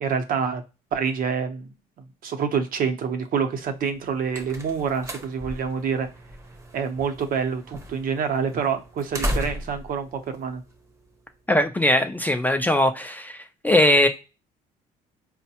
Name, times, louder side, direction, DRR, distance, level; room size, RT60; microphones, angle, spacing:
voice 1, 0.0-0.6 0.9-1.7 2.2-6.1 6.7-10.6, right 6 dB, 55° right, 0.7 m, -27 dB
sound 1, 3.8-11.3, equal, 15° right, 0.7 m, -36 dB
voice 2, 11.5-14.1, left 1 dB, 10° left, 0.4 m, -20 dB
4.4 x 2.1 x 2.8 m
cardioid pair, 110°, 17 cm